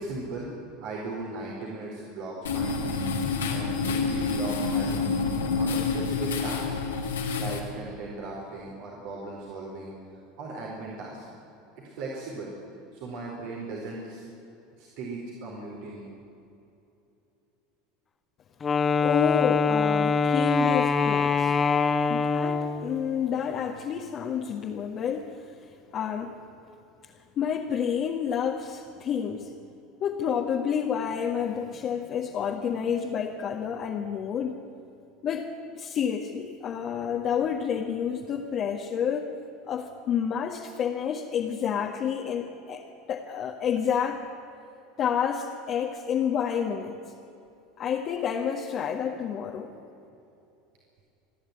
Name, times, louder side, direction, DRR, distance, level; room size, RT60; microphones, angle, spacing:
voice 1, 0.0-2.9 3.4-6.7 7.4-11.2 11.8-12.5 12.9-14.3 14.8-16.1, right 2 dB, 60° right, -3 dB, 4.4 m, -38 dB
sound 1, 2.4-7.6, left 4 dB, 85° left, 2.7 m, -28 dB
Wind instrument woodwind instrument, 18.6-22.9, left 5 dB, 25° left, 1.2 m, -24 dB
voice 2, 19.0-21.6 22.1-25.4 25.9-26.4 27.4-29.5 30.0-34.6 35.2-39.3 39.7-44.2 45.0-47.0 47.8-49.7, left 8 dB, 45° left, 0 dB, 1.7 m, -29 dB
28.0 x 10.5 x 9.7 m, 2.8 s
hypercardioid pair, 80°, 0 cm